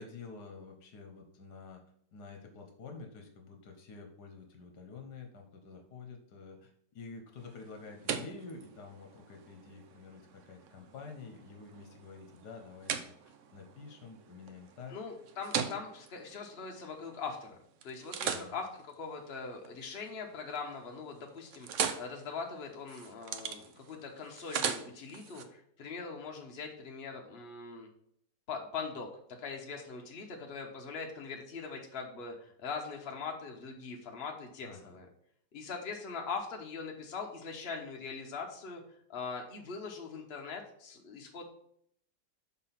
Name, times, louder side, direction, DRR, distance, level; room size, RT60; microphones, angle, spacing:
voice 1, 0.0-1.8 2.1-15.0 18.2-18.5 34.6-35.0, left 4 dB, 70° left, 4 dB, 1.5 m, -49 dB
sound 1, 7.4-17.4 17.8-20.1 20.5-20.9 21.2-25.4, right 7 dB, 65° right, 0.8 m, -40 dB
voice 2, 14.9-17.6 17.8-18.7 19.0-27.9 28.5-29.1 29.4-35.1 35.5-38.8 39.1-41.4, left 5 dB, 40° left, 1 dB, 1.2 m, -41 dB
6.1 x 4.1 x 5.8 m, 0.68 s
omnidirectional pair, 1.9 m